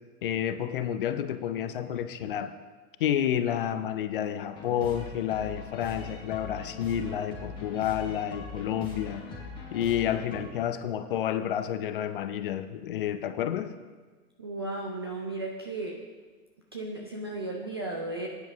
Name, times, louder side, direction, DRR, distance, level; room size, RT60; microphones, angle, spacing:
voice 1, 0.2-2.5 3.0-9.3 9.7-13.7, left 10 dB, 35° left, 11 dB, 0.5 m, -30 dB
sound 1, 4.5-10.4, left 3 dB, 10° left, 3.6 m, -41 dB
voice 2, 14.4-16.0 16.7-18.3, right 2 dB, 20° right, -1 dB, 0.3 m, -35 dB
16.0 x 9.7 x 3.5 m, 1.4 s
figure-of-eight pair, 120°, 48 cm